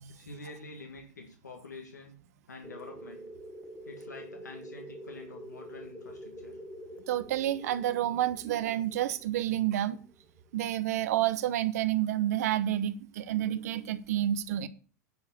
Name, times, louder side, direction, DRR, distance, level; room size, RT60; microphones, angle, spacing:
voice 1, 0.1-2.2 2.5-3.2 3.8-6.6, left 3 dB, 90° left, 1.6 m, -47 dB
sound 1, 2.6-11.0, equal, 15° left, 1.4 m, -47 dB
voice 2, 7.1-10.0 10.5-14.7, right 12 dB, 70° right, 0.9 m, -29 dB
10.0 x 4.8 x 7.0 m
hypercardioid pair, 90°, 9 cm